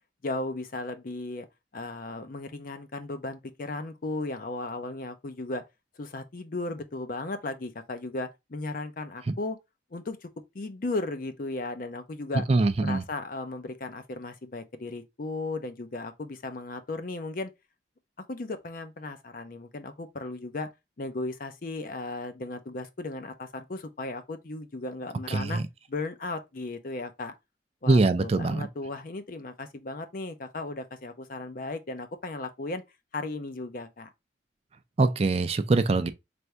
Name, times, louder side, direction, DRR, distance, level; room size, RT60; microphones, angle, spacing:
voice 1, 0.2-1.5 1.7-5.6 6.0-9.6 9.9-10.3 10.5-12.4 12.8-17.5 18.3-20.7 21.0-25.6 25.9-27.3 27.8-32.8 33.1-34.1, left 2 dB, 50° left, 0.6 m, -36 dB
voice 2, 12.5-13.0 25.3-25.7 27.9-28.7 35.0-36.1, right 3 dB, 35° right, 0.4 m, -23 dB
3.4 x 2.6 x 4.4 m
head